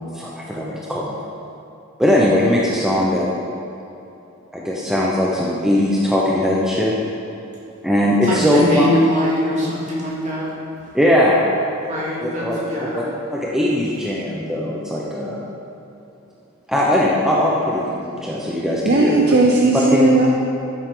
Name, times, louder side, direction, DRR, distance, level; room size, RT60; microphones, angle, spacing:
voice 1, 0.1-1.1 2.0-3.3 4.5-6.9 7.8-8.9 10.9-11.4 12.2-12.6 12.9-13.0 13.3-15.4 16.7-19.4 19.9-20.2, left 1 dB, ahead, -5 dB, 0.8 m, -19 dB
voice 2, 8.2-10.6 11.8-13.1, equal, 35° right, -6 dB, 2.3 m, -22 dB
voice 3, 18.8-20.3, right 2 dB, 50° right, -1 dB, 0.7 m, -15 dB
13.5 x 7.6 x 3.8 m, 2.7 s
head